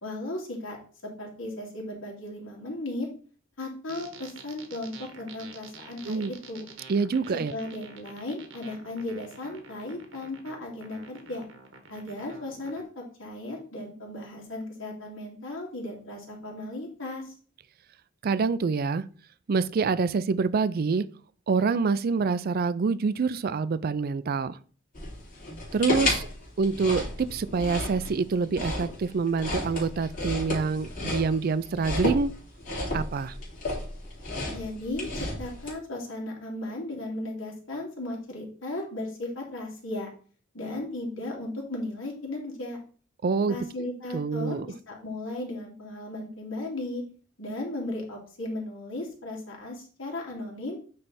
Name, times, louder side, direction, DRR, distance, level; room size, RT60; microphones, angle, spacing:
voice 1, 0.0-0.8 1.0-3.1 3.6-6.7 7.5-11.5 11.9-17.3 34.5-40.1 40.5-42.8 43.5-47.0 47.4-50.8, left 1 dB, 80° left, 2.4 m, -36 dB
sound 1, 3.9-12.8, right 4 dB, 80° right, 1.2 m, -48 dB
voice 2, 6.9-7.5 18.2-19.0 19.5-21.1 21.5-24.6 25.7-26.3 26.6-32.4 32.9-33.4 43.2-43.6 44.1-44.7, right 4 dB, 50° right, 0.4 m, -26 dB
sound 2, 24.9-35.7, left 2 dB, 45° left, 2.6 m, -32 dB
8.8 x 3.3 x 4.2 m
head